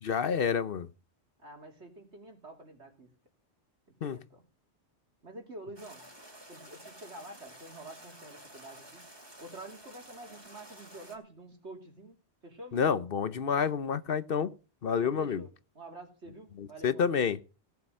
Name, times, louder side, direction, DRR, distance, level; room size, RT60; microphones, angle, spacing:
voice 1, 0.0-0.9 4.0-4.2 12.7-14.5 14.8-15.4 16.6-17.4, left 6 dB, 60° left, 1.0 m, -29 dB
voice 2, 1.4-3.1 4.0-4.4 5.2-6.0 6.5-9.0 9.4-13.0 15.0-17.1, right 1 dB, 85° right, 3.4 m, -48 dB
sound 1, 5.8-11.2, right 1 dB, 20° right, 2.9 m, -51 dB
17.0 x 7.0 x 6.4 m
omnidirectional pair, 1.1 m